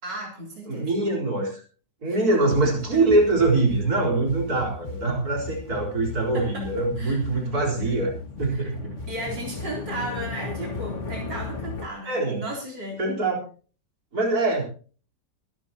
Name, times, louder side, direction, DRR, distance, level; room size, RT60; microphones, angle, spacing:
voice 1, 0.0-0.9 2.3-3.0 6.3-6.7 7.0-7.2 7.8-8.1 8.5-8.7 9.1-13.0, right 1 dB, 80° right, -2 dB, 4.4 m, -35 dB
voice 2, 0.7-1.6 2.0-8.1 8.4-8.8 12.1-12.4 13.0-13.4 14.1-14.6, right 2 dB, 60° right, -1 dB, 4.6 m, -23 dB
sound 1, 2.5-11.9, left 3 dB, 45° left, 2.2 m, -36 dB
23.5 x 12.5 x 2.9 m, 0.40 s
omnidirectional pair, 1.9 m